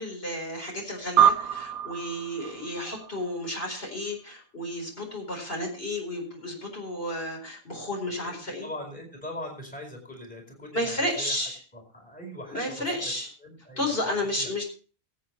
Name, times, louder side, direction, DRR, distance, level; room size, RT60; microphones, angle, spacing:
voice 1, 0.0-8.7 10.7-11.6 12.5-13.3 13.8-14.6, left 1 dB, 45° left, 0 dB, 4.6 m, -32 dB
sound 1, 1.2-3.9, right 9 dB, 85° right, 1.3 m, -26 dB
voice 2, 8.1-11.4 11.7-13.0 13.4-14.5, left 1 dB, 5° left, 1 dB, 4.2 m, -41 dB
22.5 x 8.6 x 3.1 m, 0.38 s
omnidirectional pair, 1.4 m